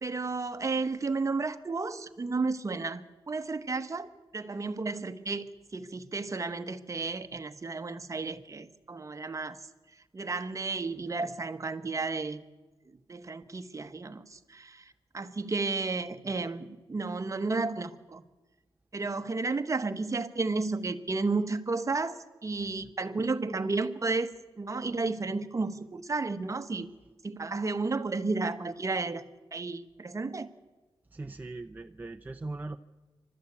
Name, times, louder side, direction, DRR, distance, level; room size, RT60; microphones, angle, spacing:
voice 1, 0.0-9.6 10.1-12.4 12.9-14.8 15.1-18.2 18.9-26.9 27.2-29.2 29.5-30.5, right 3 dB, 35° right, 10 dB, 1.1 m, -32 dB
voice 2, 31.1-32.8, right 2 dB, 20° right, 6 dB, 0.6 m, -40 dB
28.5 x 13.0 x 8.4 m, 1.2 s
wide cardioid pair, 110°, 10 cm